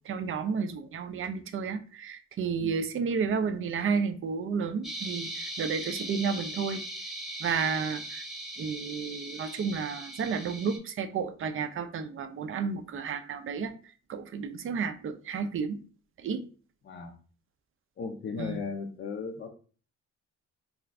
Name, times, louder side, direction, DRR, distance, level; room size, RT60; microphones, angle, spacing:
voice 1, 0.1-6.8 7.4-8.2 8.6-13.7 14.1-15.8 16.2-16.4 18.4-18.6, right 5 dB, 45° right, 0.4 m, -32 dB
sound 1, 4.8-10.8, right 1 dB, ahead, 0.7 m, -39 dB
voice 2, 16.8-17.1 18.0-19.5, left 5 dB, 40° left, 0.5 m, -36 dB
2.5 x 2.4 x 3.2 m
cardioid pair, 90°, 30 cm